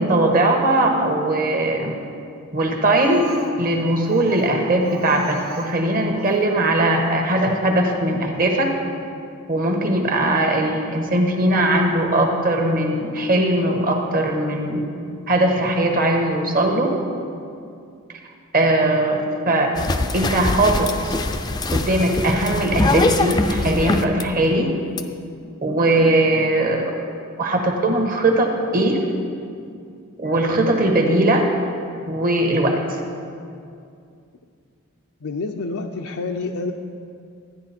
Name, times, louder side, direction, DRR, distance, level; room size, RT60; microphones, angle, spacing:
voice 1, 0.0-1.9 2.5-3.2 3.6-8.7 9.5-14.8 15.3-16.9 18.5-19.2 19.5-19.7 20.1-21.2 21.7-24.7 25.6-26.9 27.4-29.0 30.2-31.5 32.1-33.0, right 1 dB, 40° right, 2 dB, 1.4 m, -19 dB
Speech, 3.0-6.5 7.5-7.6 8.0-8.1 8.3-8.4, right 1 dB, 80° right, 1.5 m, -39 dB
sound 1, 19.7-24.2 25.0-25.1, left 2 dB, 20° left, 0.5 m, -22 dB
voice 2, 35.2-36.7, left 3 dB, 80° left, 2 dB, 0.6 m, -28 dB
13.5 x 10.0 x 4.3 m, 2.4 s
head